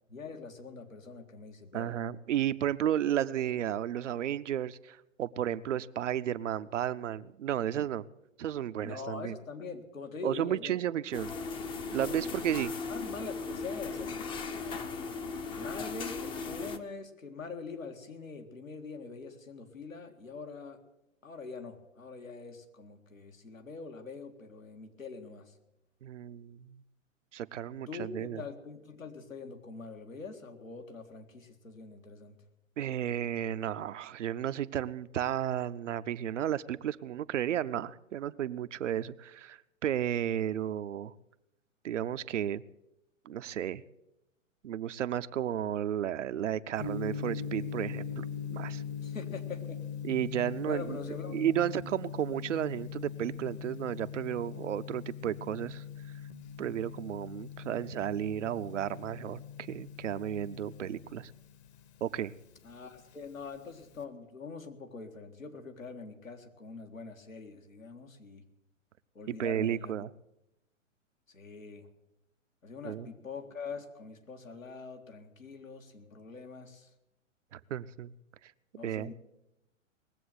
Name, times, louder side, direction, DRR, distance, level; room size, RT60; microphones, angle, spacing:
voice 1, 0.1-2.0 8.8-10.7 12.0-12.3 12.9-14.3 15.5-20.8 21.2-25.5 27.9-32.4 49.0-49.8 50.4-51.4 62.6-68.4 69.2-69.9 71.3-71.9 72.6-76.9 78.8-79.1, left 4 dB, 85° left, 4 dB, 2.0 m, -44 dB
voice 2, 1.7-8.0 8.4-9.4 10.2-11.3 11.9-12.7 26.0-26.8 27.3-28.4 32.8-41.1 41.8-42.6 43.3-43.8 44.6-48.8 50.0-51.0 51.3-55.8 56.6-61.3 62.0-62.3 69.3-70.1 72.8-73.1 77.5-78.1 78.4-78.5 78.8-79.1, right 10 dB, 65° right, 14 dB, 0.7 m, -33 dB
sound 1, 11.1-16.8, left 4 dB, 15° left, 0.6 m, -37 dB
Gong, 46.8-64.0, left 7 dB, 55° left, 1.5 m, -41 dB
20.0 x 7.7 x 7.9 m, 0.89 s
figure-of-eight pair, 110°, 39 cm